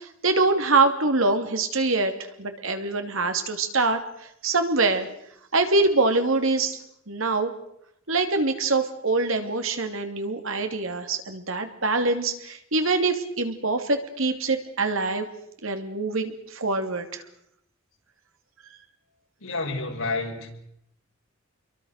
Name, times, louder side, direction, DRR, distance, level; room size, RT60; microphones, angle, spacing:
voice 1, 0.0-2.1 2.4-5.1 5.5-6.8 7.1-7.5 8.1-15.3 15.6-17.2, right 3 dB, 70° right, 6 dB, 2.9 m, -24 dB
voice 2, 19.4-20.5, left 3 dB, 85° left, 2 dB, 5.5 m, -29 dB
28.0 x 23.0 x 6.6 m, 0.76 s
head